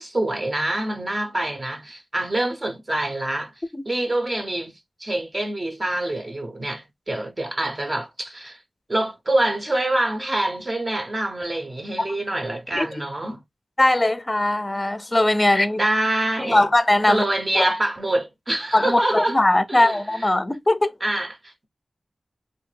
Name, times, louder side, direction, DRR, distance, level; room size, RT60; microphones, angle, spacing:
voice 1, 0.0-3.5 3.9-8.6 8.9-13.4 15.8-16.7 17.1-19.4 19.7-20.3 21.0-21.7, right 1 dB, 35° right, 0.6 m, -26 dB
voice 2, 12.7-13.1 13.8-15.8 16.4-17.2 17.5-17.7 18.7-20.9, left 1 dB, 25° left, 0.4 m, -20 dB
3.1 x 2.1 x 3.1 m
wide cardioid pair, 70°, 0 cm